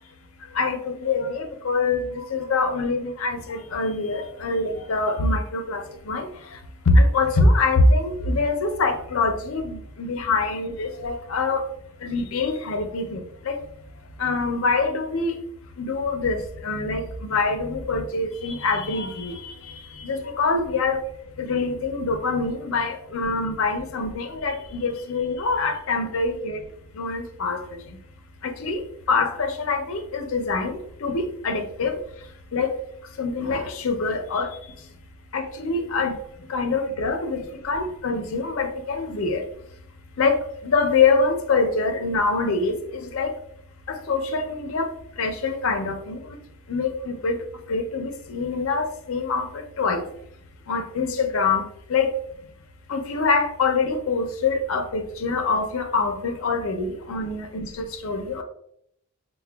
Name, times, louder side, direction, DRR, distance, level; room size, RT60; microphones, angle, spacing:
voice 1, 0.5-6.6 6.9-11.6 12.0-13.6 14.2-15.4 15.8-17.0 17.3-21.0 21.4-26.6 26.9-27.6 28.4-32.0 32.5-32.7 33.2-34.6 35.3-36.2 36.5-39.4 40.2-43.3 43.9-44.9 45.2-46.2 46.7-47.4 47.7-50.0 50.7-51.6 51.9-52.1 52.9-58.4, left 3 dB, 65° left, 7 dB, 0.5 m, -24 dB
5.7 x 2.2 x 2.2 m, 0.71 s
head